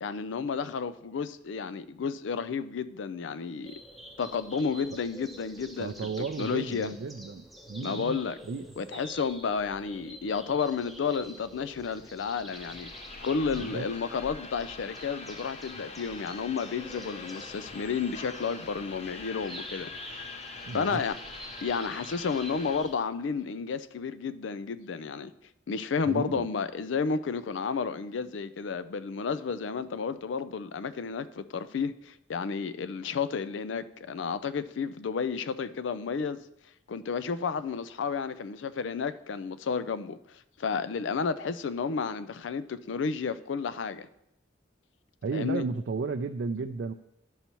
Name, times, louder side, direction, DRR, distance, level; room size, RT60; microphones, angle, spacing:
voice 1, 0.0-3.8 4.2-6.9 7.8-8.4 8.8-12.9 13.2-20.3 20.7-21.2 21.6-25.3 25.7-36.4 36.9-40.2 40.6-44.1 45.3-45.6, left 5 dB, 85° left, 0.4 m, -32 dB
sound 1, 3.6-22.9, equal, ahead, 0.7 m, -48 dB
voice 2, 5.8-8.2 8.5-8.7 13.5-13.9 20.6-21.0 26.1-26.5 45.2-46.9, right 4 dB, 70° right, 0.4 m, -34 dB
sound 2, 12.5-22.8, left 3 dB, 35° left, 0.7 m, -44 dB
11.5 x 5.5 x 3.0 m
head